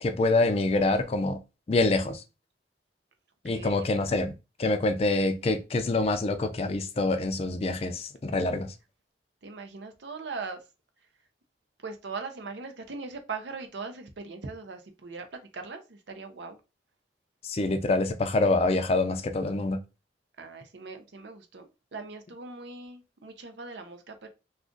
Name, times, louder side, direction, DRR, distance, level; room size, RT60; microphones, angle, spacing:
voice 1, 0.0-1.4 1.7-2.2 3.4-4.3 4.6-8.7 17.4-19.8, left 2 dB, 35° left, 0.4 m, -26 dB
voice 2, 3.4-4.1 8.5-8.6 9.4-10.6 11.8-16.6 20.4-24.3, right 4 dB, 80° right, 0.6 m, -40 dB
2.4 x 2.4 x 3.7 m
head